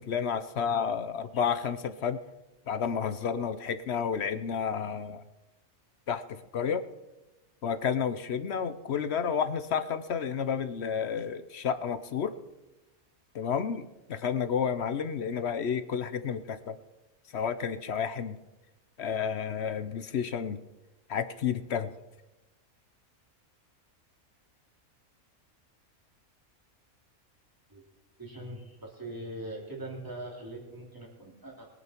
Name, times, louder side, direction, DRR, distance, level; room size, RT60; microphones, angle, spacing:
voice 1, 0.0-2.2 2.7-5.2 6.1-6.9 7.6-12.3 13.3-16.7 17.3-18.4 19.0-20.6 21.1-21.9, left 7 dB, 55° left, 12 dB, 0.9 m, -31 dB
voice 2, 28.2-31.7, right 1 dB, 15° right, -2 dB, 3.3 m, -41 dB
22.0 x 9.3 x 4.5 m, 1.0 s
omnidirectional pair, 1.5 m